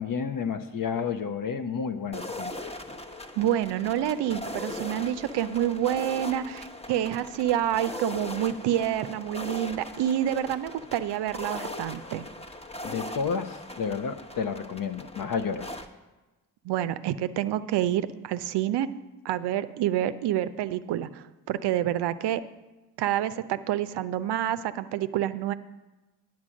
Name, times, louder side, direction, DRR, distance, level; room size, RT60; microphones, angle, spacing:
voice 1, 0.0-2.5 12.8-15.7, left 6 dB, 45° left, 7 dB, 0.7 m, -31 dB
sound 1, 2.1-15.9, left 1 dB, 10° left, 0.9 m, -39 dB
voice 2, 3.4-12.2 16.6-18.9 19.2-22.4 23.0-25.5, right 11 dB, 55° right, 13 dB, 0.6 m, -28 dB
9.6 x 6.0 x 6.2 m, 1.1 s
hypercardioid pair, 40°, 49 cm